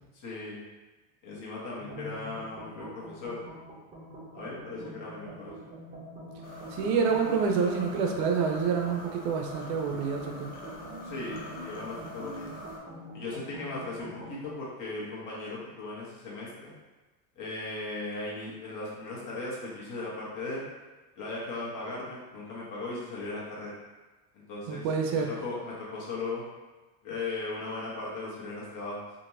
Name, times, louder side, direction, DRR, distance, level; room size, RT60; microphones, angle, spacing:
voice 1, 0.1-0.6 1.2-3.4 4.3-5.7 11.0-12.5 13.1-16.7 17.4-20.7 21.2-23.7 24.3-24.9 25.1-26.4 27.0-29.0, left 2 dB, 40° left, -6 dB, 1.1 m, -37 dB
sound 1, 1.8-14.6, right 1 dB, 20° right, 0.7 m, -45 dB
sound 2, 6.4-12.8, left 1 dB, 20° left, 0.3 m, -45 dB
voice 2, 6.7-10.5 24.7-25.3, right 5 dB, 60° right, 2 dB, 0.5 m, -27 dB
2.9 x 2.6 x 2.6 m, 1.2 s
supercardioid pair, 105°, 49 cm